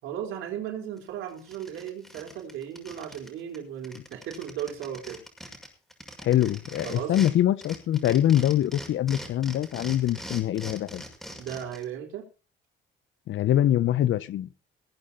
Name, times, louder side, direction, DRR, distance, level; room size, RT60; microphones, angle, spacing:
voice 1, 0.0-5.2 6.8-7.2 11.4-12.3, right 9 dB, 90° right, 4.1 m, -36 dB
sound 1, 1.0-1.1 1.4-3.3 3.5-3.6 3.8-7.3 7.6-11.8, equal, ahead, 6.3 m, -42 dB
voice 2, 6.2-11.0 13.3-14.5, left 12 dB, 75° left, 1.1 m, -24 dB
20.5 x 8.7 x 4.1 m
cardioid pair, 90°, 20 cm